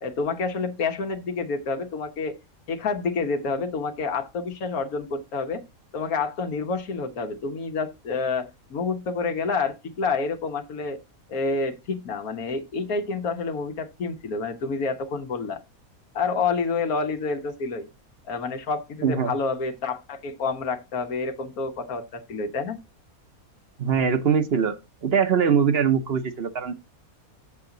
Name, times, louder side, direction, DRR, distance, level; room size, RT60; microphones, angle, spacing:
voice 1, 0.0-2.4 2.7-5.6 5.9-11.0 11.3-15.6 16.1-17.9 18.3-22.8, left 4 dB, 80° left, 1.5 m, -28 dB
voice 2, 19.0-19.3 23.8-26.7, right 7 dB, 50° right, 0.9 m, -22 dB
7.4 x 7.2 x 3.8 m
omnidirectional pair, 1.5 m